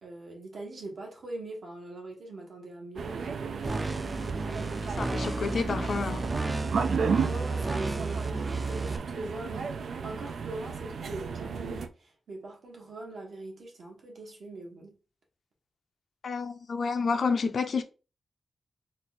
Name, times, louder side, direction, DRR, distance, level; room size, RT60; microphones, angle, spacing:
voice 1, 0.0-3.7 7.2-9.8 10.0-15.0, right 2 dB, 65° right, 1.4 m, -42 dB
sound 1, 3.0-11.9, right 5 dB, 90° right, 0.4 m, -34 dB
sound 2, 3.6-9.0, right 3 dB, 25° right, 0.4 m, -32 dB
voice 2, 5.0-6.3 16.2-17.8, left 5 dB, 60° left, 0.5 m, -29 dB
4.0 x 2.4 x 4.1 m
wide cardioid pair, 160°, 0 cm